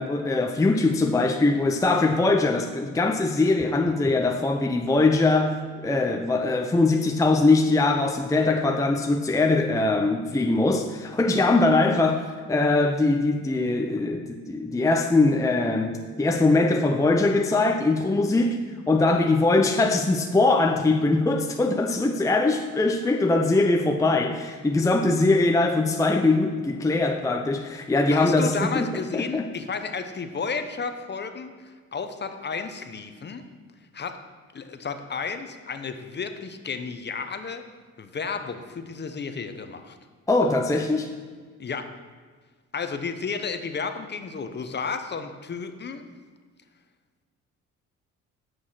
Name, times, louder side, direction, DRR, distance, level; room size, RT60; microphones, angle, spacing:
voice 1, 0.0-18.6 18.9-28.9 29.1-29.5 40.3-41.1, left 2 dB, 10° left, 4 dB, 0.6 m, -22 dB
voice 2, 28.1-31.5 31.9-33.4 33.9-34.2 34.5-37.6 38.0-40.0 41.6-41.9 42.7-46.0, left 5 dB, 35° left, 8 dB, 0.8 m, -32 dB
8.9 x 6.3 x 5.7 m, 1.6 s
cardioid pair, 90°, 30 cm